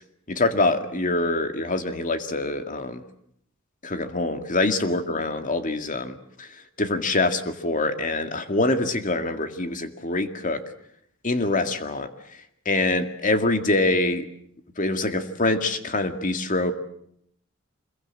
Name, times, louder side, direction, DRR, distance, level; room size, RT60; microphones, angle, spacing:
voice 1, 0.3-3.0 3.8-6.5 6.8-10.6 11.2-12.1 12.7-14.3 14.8-16.7, left 2 dB, 40° left, 7 dB, 2.1 m, -25 dB
25.5 x 22.5 x 7.7 m, 0.70 s
head